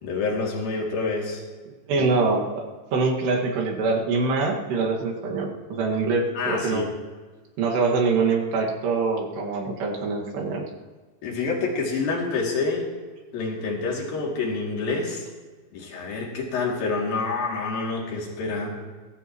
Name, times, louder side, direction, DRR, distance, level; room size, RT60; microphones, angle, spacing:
voice 1, 0.0-1.4 2.0-2.1 6.3-6.9 11.2-12.8 13.3-15.3 15.7-18.7, left 4 dB, 55° left, -2 dB, 4.2 m, -27 dB
voice 2, 1.9-2.6 2.9-6.9 7.6-10.7, right 4 dB, 70° right, -1 dB, 3.9 m, -24 dB
21.5 x 16.0 x 3.1 m, 1.4 s
omnidirectional pair, 5.2 m